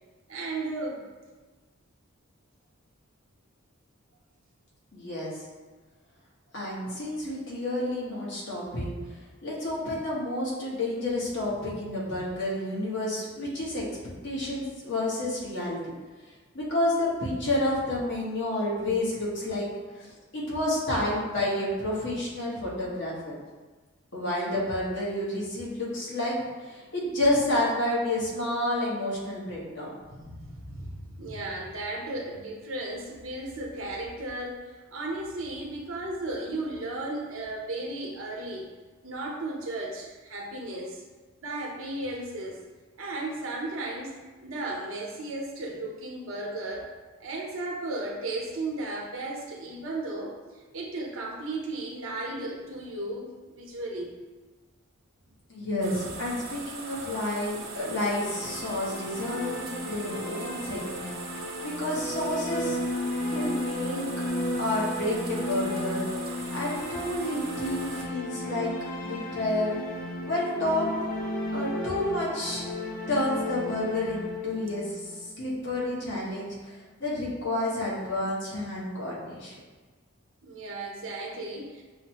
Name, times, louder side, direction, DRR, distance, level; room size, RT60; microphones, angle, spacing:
voice 1, 0.3-1.0 30.1-34.6 34.9-38.7 39.0-41.0 41.4-42.6 43.0-46.9 47.2-50.3 50.7-54.1 80.4-81.8, right 2 dB, 75° right, -2 dB, 0.8 m, -35 dB
voice 2, 4.9-5.3 6.5-8.9 9.4-13.8 14.2-15.9 16.5-19.7 19.9-23.3 24.1-29.9 55.5-61.2 61.6-62.8 63.3-64.0 64.6-66.1 66.5-68.7 69.0-69.8 70.2-70.9 71.5-72.6 73.1-79.5, left 1 dB, 55° left, -5 dB, 1.1 m, -30 dB
sound 1, 55.8-68.1, right 4 dB, 45° right, 0.5 m, -41 dB
sound 2, 57.9-75.9, left 1 dB, 40° left, 0.5 m, -34 dB
6.2 x 2.1 x 2.9 m, 1.3 s
head